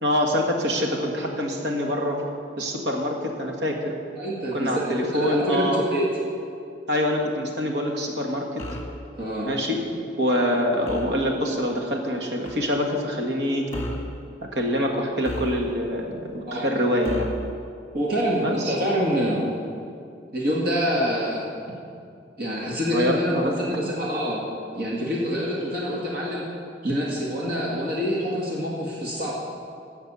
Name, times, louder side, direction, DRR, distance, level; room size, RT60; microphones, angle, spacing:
voice 1, 0.0-2.2 2.6-3.9 4.5-5.8 6.9-8.6 9.5-9.8 10.2-13.7 14.5-17.3 18.4-18.8 22.9-23.5, equal, 80° right, 1 dB, 1.8 m, -25 dB
voice 2, 4.2-6.1 9.2-9.5 16.4-16.7 17.9-19.4 20.3-21.4 22.4-24.4 24.7-26.4 26.8-29.3, equal, 60° right, -4 dB, 1.9 m, -26 dB
sound 1, 8.6-9.0 10.9-11.2 12.4-12.7 13.7-14.1 15.2-15.9 17.0-17.5, left 1 dB, 15° left, 1.5 m, -33 dB
16.0 x 5.8 x 7.0 m, 2.4 s
head